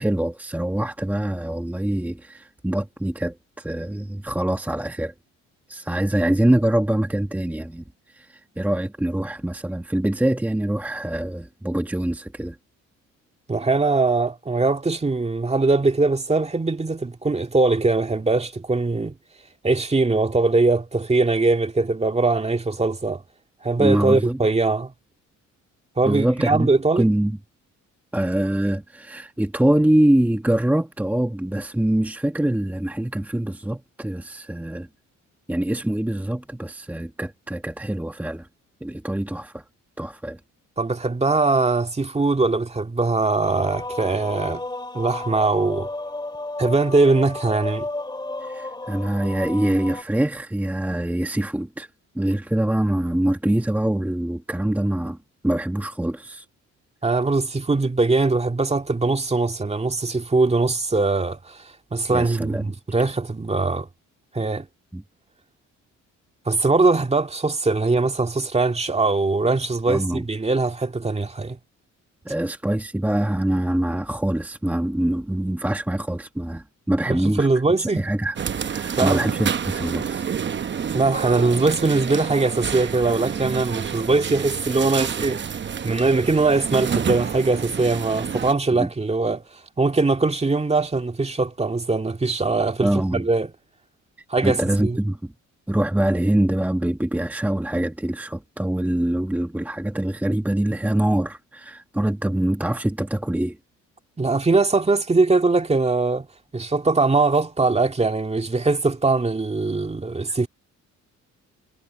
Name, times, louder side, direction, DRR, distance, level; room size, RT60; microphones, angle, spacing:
voice 1, 0.0-5.1 5.7-7.8 8.1-12.6 23.8-24.4 26.0-26.7 26.9-27.4 28.1-34.9 35.5-38.5 38.8-39.6 40.0-40.4 48.4-51.9 52.1-55.2 55.4-56.4 62.1-62.7 64.9-65.0 69.9-70.2 72.2-77.5 77.8-78.4 78.7-80.3 88.7-88.9 92.8-93.2 94.4-95.3 95.7-103.6, right 1 dB, 5° right, 1.4 m, -24 dB
voice 2, 13.5-19.1 19.6-23.2 23.6-24.9 26.0-27.1 40.8-44.6 44.9-45.9 46.6-47.9 57.0-61.6 61.9-63.9 64.3-64.7 66.5-71.6 77.1-78.1 79.0-79.3 80.9-85.4 85.8-89.4 89.8-93.5 94.3-95.0 104.2-106.3 106.5-110.5, right 3 dB, 20° right, 2.1 m, -21 dB
sound 1, 43.4-50.0, left 2 dB, 15° left, 3.6 m, -33 dB
sound 2, 78.4-88.5, right 7 dB, 40° right, 0.9 m, -28 dB
cardioid pair, 90°, 30 cm